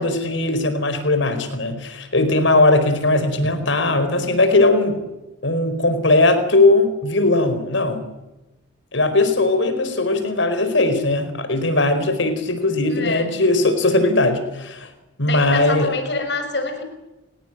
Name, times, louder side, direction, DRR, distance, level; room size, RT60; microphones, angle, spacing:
voice 1, 0.0-5.0 5.4-8.1 8.9-14.9 15.2-15.9, left 2 dB, 80° left, 10 dB, 4.7 m, -19 dB
voice 2, 12.9-13.3 15.3-16.8, left 3 dB, 65° left, 8 dB, 6.2 m, -26 dB
30.0 x 18.0 x 9.1 m, 0.98 s
head